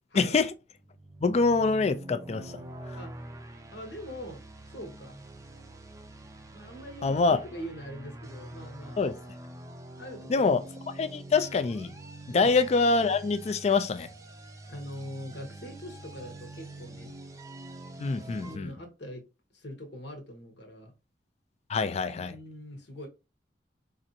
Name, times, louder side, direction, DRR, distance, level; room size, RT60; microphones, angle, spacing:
voice 1, 0.2-0.5 1.2-2.6 7.0-7.4 9.0-9.1 10.3-10.6 11.0-11.9 12.3-14.1 18.0-18.7 21.7-22.3, left 4 dB, 40° left, 0.4 m, -25 dB
sound 1, 0.7-18.6, right 1 dB, 20° right, 0.5 m, -45 dB
voice 2, 3.7-4.4 4.7-5.2 6.5-9.0 10.0-10.6 12.3-12.6 14.7-17.1 18.4-19.2 19.5-20.9 22.1-23.1, equal, 70° left, 1.1 m, -42 dB
4.1 x 2.5 x 2.7 m
head